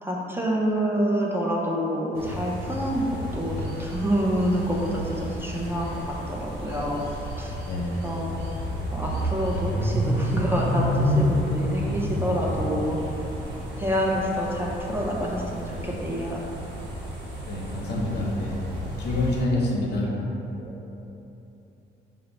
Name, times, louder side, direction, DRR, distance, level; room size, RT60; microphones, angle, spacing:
voice 1, 0.0-7.1 7.4-7.6 8.0-8.3 8.9-13.0 13.8-16.4 20.0-20.1 20.6-21.0, equal, 10° right, -3 dB, 0.5 m, -27 dB
sound 1, 2.1-19.4, equal, 80° right, 1.1 m, -30 dB
voice 2, 7.7-8.0 17.5-18.6 19.0-20.1, left 1 dB, 55° left, -3 dB, 0.7 m, -27 dB
4.1 x 2.0 x 4.0 m, 3.0 s
cardioid pair, 90°, 20 cm